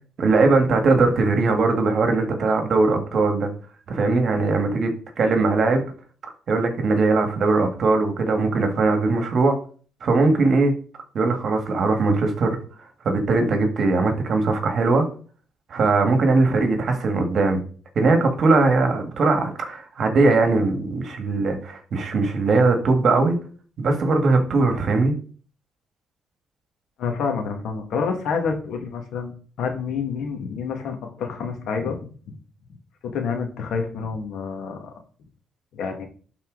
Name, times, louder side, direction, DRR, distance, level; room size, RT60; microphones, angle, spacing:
voice 1, 0.2-3.5 3.9-5.8 6.5-9.6 10.0-10.7 11.1-12.6 13.0-15.0 15.7-17.6 18.0-23.4 23.8-25.1, right 3 dB, 50° right, 1.9 m, -20 dB
voice 2, 27.0-29.3 29.6-32.4 33.0-34.9 35.7-36.1, left 5 dB, 75° left, 1.9 m, -28 dB
11.5 x 4.3 x 4.0 m
cardioid pair, 130°, 0 cm